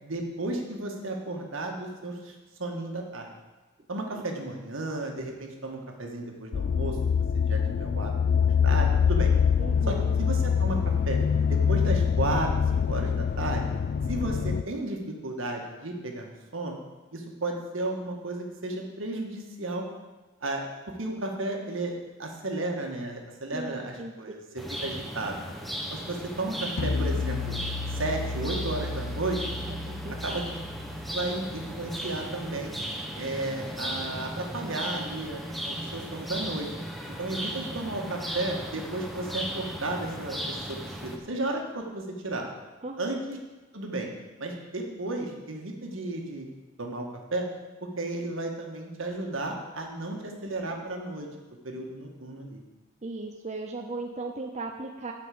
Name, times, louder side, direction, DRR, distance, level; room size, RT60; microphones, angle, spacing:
voice 1, 0.0-3.3 3.9-7.0 7.5-8.1 8.6-9.3 9.9-10.8 11.0-11.2 11.5-13.6 14.1-16.8 17.1-19.8 20.4-20.6 21.0-24.4 24.8-25.4 25.9-27.5 27.9-29.4 30.2-30.4 31.1-32.7 33.1-36.7 37.2-42.4 43.0-43.4 43.7-44.1 44.4-46.5 46.8-47.5 48.0-51.3 51.6-52.6, right 2 dB, 75° right, 2 dB, 1.7 m, -33 dB
sound 1, 6.5-14.6, left 7 dB, 50° left, 0.3 m, -24 dB
voice 2, 9.6-10.1 23.5-24.4 29.7-30.4 42.8-43.1 53.0-55.1, right 3 dB, 35° right, 3 dB, 0.6 m, -37 dB
sound 2, 24.6-41.2, equal, ahead, 0.9 m, -36 dB
sound 3, 26.8-32.1, left 3 dB, 85° left, 0.6 m, -34 dB
8.5 x 5.8 x 7.7 m, 1.2 s
head